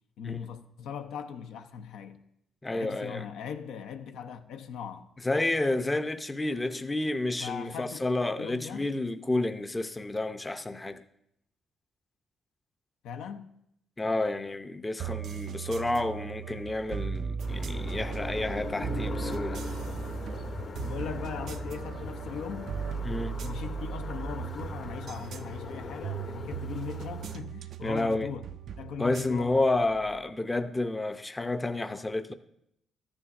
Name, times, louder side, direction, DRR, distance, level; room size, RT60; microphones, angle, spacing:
voice 1, 0.2-2.2 2.7-5.1 7.4-8.0 8.4-8.9 13.0-13.5 20.8-22.7 23.4-28.4 28.8-29.9, left 7 dB, 85° left, 0.6 m, -39 dB
voice 2, 2.6-3.3 5.2-11.0 14.0-19.6 23.0-23.4 27.8-28.3 29.0-32.3, left 2 dB, 15° left, 0.5 m, -30 dB
sound 1, 15.0-30.2, right 7 dB, 65° right, 0.3 m, -38 dB
sound 2, 17.4-27.4, left 4 dB, 60° left, 1.1 m, -40 dB
13.5 x 9.7 x 2.5 m
cardioid pair, 90°, 0 cm